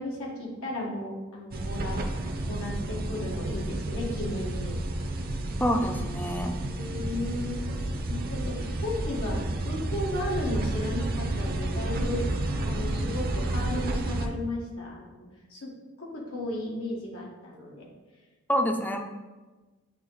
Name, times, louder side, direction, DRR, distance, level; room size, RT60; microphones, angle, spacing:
voice 1, 0.0-2.0 2.5-4.8 6.7-7.6 8.1-9.4 9.6-12.2 12.6-15.2 15.5-15.7 16.0-17.9, left 1 dB, 90° left, -3 dB, 1.5 m, -34 dB
sound 1, 1.5-14.3, right 1 dB, 45° right, 0.6 m, -31 dB
voice 2, 5.6-6.6 18.5-19.0, equal, 10° left, 4 dB, 0.4 m, -27 dB
8.5 x 3.0 x 3.9 m, 1.2 s
head